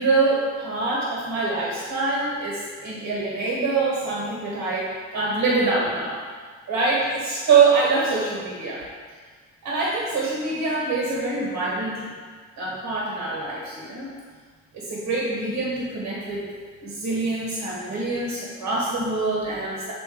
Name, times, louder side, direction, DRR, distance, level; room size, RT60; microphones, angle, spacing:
voice 1, 0.0-6.2 6.7-8.8 9.6-12.1 12.6-14.1 14.7-16.4 16.8-19.9, right 3 dB, 75° right, -5 dB, 1.6 m, -24 dB
7.5 x 3.0 x 4.9 m, 1.5 s
cardioid pair, 90°, 30 cm